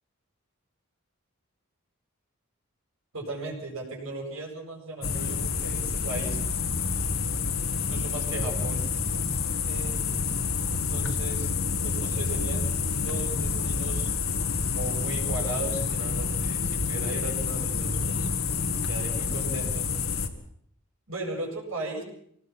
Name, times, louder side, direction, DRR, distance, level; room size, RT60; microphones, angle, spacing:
voice 1, 3.1-6.4 7.7-8.8 9.6-10.4 10.7-11.5 11.8-14.1 14.7-18.3 18.9-19.9 21.1-22.0, right 2 dB, 70° right, 1 dB, 7.9 m, -37 dB
sound 1, 5.0-20.3, left 5 dB, 75° left, 2.0 m, -28 dB
25.5 x 19.5 x 6.1 m, 0.68 s
head